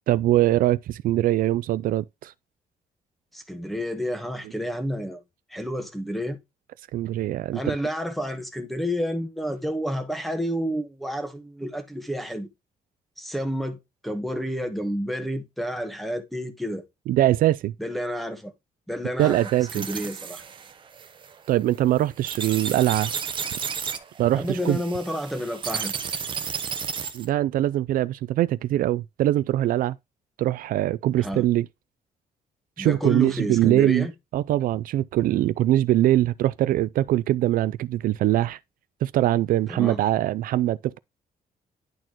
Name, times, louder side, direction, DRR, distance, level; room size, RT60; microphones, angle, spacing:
voice 1, 0.1-2.3 6.9-7.6 17.1-17.7 19.2-19.9 21.5-23.1 24.2-24.8 27.1-30.0 30.4-31.7 32.8-34.1 34.3-38.6 39.0-41.0, right 14 dB, 70° right, 0.4 m, -22 dB
voice 2, 3.3-5.2 5.5-6.4 7.5-12.5 13.2-16.8 17.8-18.5 18.9-19.4 19.7-20.4 24.4-25.9 31.2-31.5 32.8-34.1 39.7-40.0, equal, ahead, 1.2 m, -30 dB
sound 1, 19.2-27.3, right 6 dB, 35° right, 0.9 m, -33 dB
10.5 x 4.3 x 2.9 m
cardioid pair, 175°, 15 cm